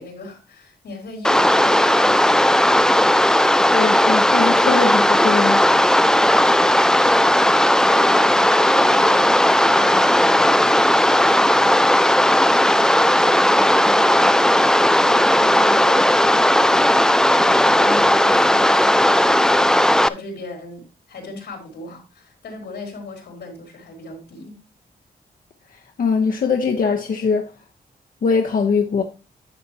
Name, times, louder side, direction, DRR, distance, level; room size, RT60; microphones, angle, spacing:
voice 1, 0.0-3.1 6.4-9.3 9.6-17.1 17.8-24.6, left 2 dB, 90° left, 3.8 m, -37 dB
sound 1, 1.2-20.1, left 1 dB, 5° left, 0.3 m, -16 dB
voice 2, 3.7-5.7 26.0-27.5 28.2-29.0, left 5 dB, 55° left, 0.9 m, -21 dB
11.0 x 6.8 x 2.8 m
wide cardioid pair, 145°, 17 cm